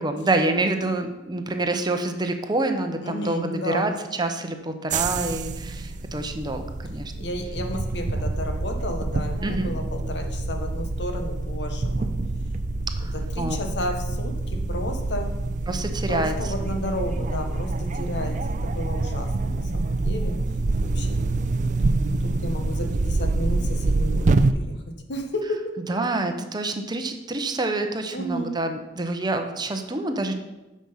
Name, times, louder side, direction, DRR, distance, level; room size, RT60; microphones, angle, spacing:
voice 1, 0.0-7.1 9.4-9.7 13.0-13.6 15.7-16.7 25.9-30.4, right 2 dB, 25° right, 6 dB, 0.8 m, -27 dB
voice 2, 3.0-3.9 7.2-12.1 13.3-15.3 16.1-20.4 20.8-21.2 22.2-24.8 25.1-25.8 28.1-28.5, equal, 70° left, 5 dB, 1.3 m, -32 dB
sound 1, 4.9-24.5, right 2 dB, 45° right, 0.4 m, -26 dB
9.2 x 6.3 x 5.7 m, 1.0 s
head